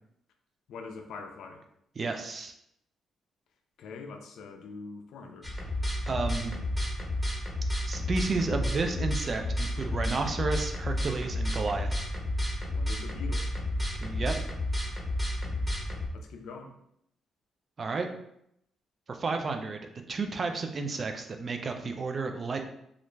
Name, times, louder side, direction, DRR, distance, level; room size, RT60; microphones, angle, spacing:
voice 1, 0.7-1.6 3.8-5.5 12.7-13.4 16.1-16.7, left 4 dB, 80° left, 4 dB, 0.4 m, -43 dB
voice 2, 2.0-2.5 6.1-6.6 7.9-12.1 14.0-14.5 17.8-18.1 19.1-19.8 20.1-22.7, right 4 dB, 45° right, 5 dB, 0.4 m, -32 dB
sound 1, 5.4-16.1, left 1 dB, 5° right, 0.9 m, -31 dB
2.4 x 2.1 x 3.1 m, 0.75 s
cardioid pair, 75°, 0 cm